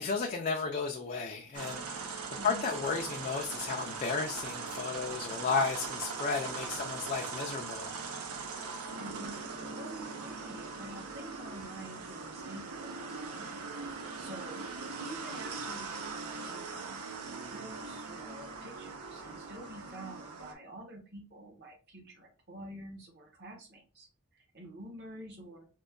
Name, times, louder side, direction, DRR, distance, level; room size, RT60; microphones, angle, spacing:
voice 1, 0.0-7.9, left 4 dB, 35° left, 0.4 m, -34 dB
sound 1, 1.5-20.5, right 4 dB, 80° right, 0.6 m, -40 dB
voice 2, 2.3-2.7 9.0-13.7 14.0-16.9 17.4-24.1 24.3-25.6, right 1 dB, 50° right, 1.0 m, -48 dB
5.1 x 2.2 x 2.3 m
head